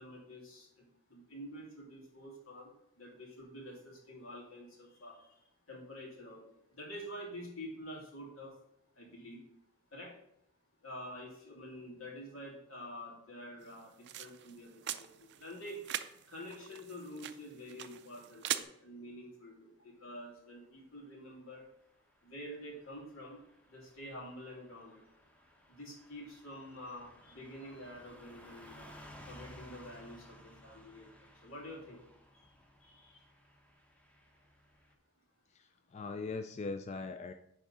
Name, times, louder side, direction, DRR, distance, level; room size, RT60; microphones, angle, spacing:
voice 1, 0.0-8.5 9.0-9.4 9.9-10.1 10.8-15.8 16.3-21.6 22.2-23.4 23.7-25.0 25.7-28.9 29.3-32.0 32.3-32.5 32.8-33.2, equal, 85° left, -2 dB, 2.4 m, -48 dB
sound 1, 13.6-18.6, right 12 dB, 55° right, 0.4 m, -42 dB
Car passing by / Truck, 21.9-34.9, equal, 5° left, 0.7 m, -58 dB
voice 2, 35.5-37.3, left 3 dB, 35° left, 8 dB, 0.3 m, -40 dB
10.0 x 3.6 x 3.9 m, 0.78 s
head